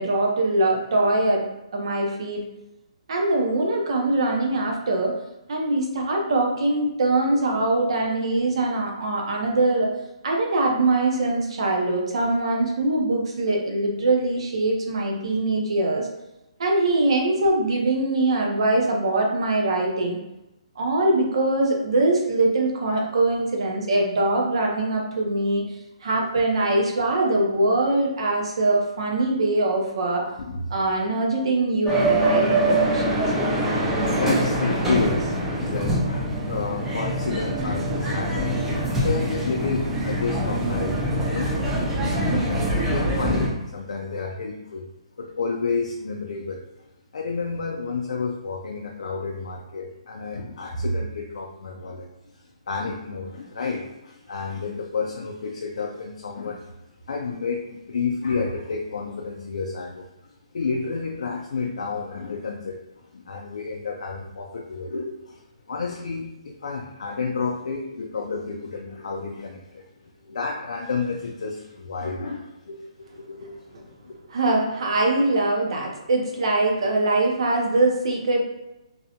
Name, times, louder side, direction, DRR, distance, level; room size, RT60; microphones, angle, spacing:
voice 1, 0.0-1.4 1.7-2.4 3.1-5.1 5.5-9.9 10.2-16.1 16.6-20.2 20.8-25.7 26.0-30.2 30.7-33.1 74.3-78.4, right 2 dB, 55° right, 0 dB, 0.6 m, -22 dB
voice 2, 30.2-30.8 33.7-41.5 42.1-44.9 45.2-46.6 47.1-52.1 52.3-56.7 57.1-60.1 60.5-72.9 73.1-74.1, left 4 dB, 80° left, 0 dB, 0.3 m, -30 dB
sound 1, 31.8-43.5, right 1 dB, 5° right, 0.3 m, -24 dB
2.6 x 2.1 x 2.7 m, 0.93 s
hypercardioid pair, 175°, 4 cm